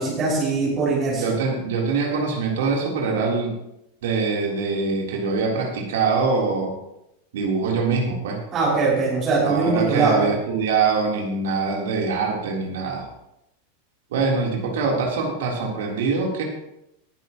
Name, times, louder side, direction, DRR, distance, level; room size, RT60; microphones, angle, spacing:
voice 1, 0.0-1.3 8.5-10.3, right 3 dB, 30° right, -7 dB, 5.7 m, -21 dB
voice 2, 1.1-3.6 4.0-6.7 7.3-8.4 9.4-13.1 14.1-16.4, right 4 dB, 55° right, -1 dB, 3.5 m, -23 dB
19.5 x 11.0 x 3.0 m, 0.85 s
figure-of-eight pair, 90°, 0 cm